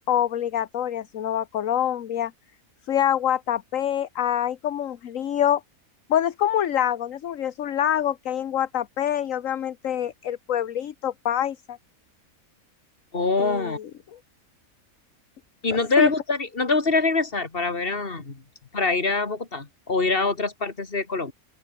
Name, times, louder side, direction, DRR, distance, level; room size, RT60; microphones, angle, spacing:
voice 1, 0.1-2.3 2.9-5.6 6.1-11.8 13.4-14.2 16.0-16.1, left 10 dB, 65° left, 1.3 m, -25 dB
voice 2, 13.1-13.8 15.6-18.4 18.7-21.3, left 3 dB, 40° left, 2.8 m, -24 dB
open air
omnidirectional pair, 1.5 m